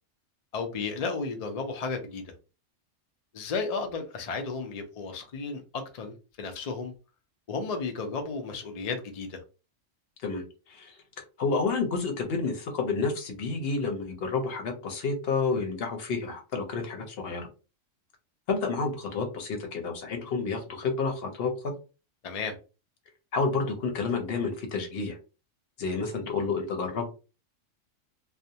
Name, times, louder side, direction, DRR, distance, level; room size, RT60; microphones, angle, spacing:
voice 1, 0.5-2.3 3.3-6.9 7.5-9.4 22.2-22.6, left 4 dB, 80° left, 0.3 m, -33 dB
voice 2, 10.2-11.0 11.4-17.5 18.5-21.5 23.3-25.2 25.8-27.1, left 4 dB, 60° left, 0.8 m, -30 dB
2.4 x 2.1 x 2.7 m
omnidirectional pair, 1.3 m